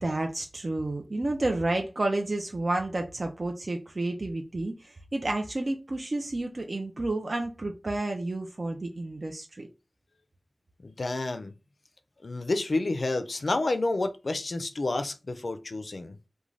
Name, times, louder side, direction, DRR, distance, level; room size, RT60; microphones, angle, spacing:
voice 1, 0.0-9.7, right 2 dB, 65° right, 0.3 m, -30 dB
voice 2, 10.8-11.5 12.2-16.2, left 2 dB, 80° left, 0.3 m, -29 dB
2.4 x 2.1 x 3.1 m
wide cardioid pair, 60°, 0 cm